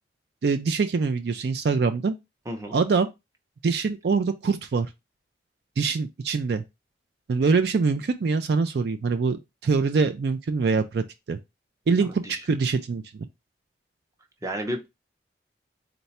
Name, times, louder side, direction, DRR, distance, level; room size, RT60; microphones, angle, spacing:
voice 1, 0.4-2.1 2.7-3.1 3.6-4.9 5.8-6.6 7.3-11.4 11.9-13.3, right 4 dB, 60° right, 0.4 m, -24 dB
voice 2, 2.5-2.8 12.2-12.4 14.4-14.9, equal, 15° right, 0.6 m, -31 dB
3.9 x 2.2 x 4.1 m
head